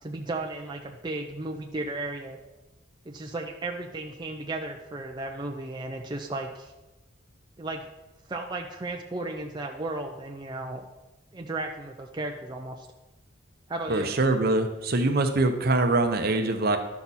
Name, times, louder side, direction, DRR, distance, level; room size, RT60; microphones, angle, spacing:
voice 1, 0.0-2.4 3.1-6.7 7.6-7.9 8.3-10.8 11.3-12.9 13.7-14.1, right 2 dB, 20° right, 1 dB, 0.5 m, -34 dB
voice 2, 13.9-16.8, right 2 dB, 50° right, 6 dB, 0.8 m, -23 dB
12.0 x 5.9 x 4.1 m, 1.0 s
head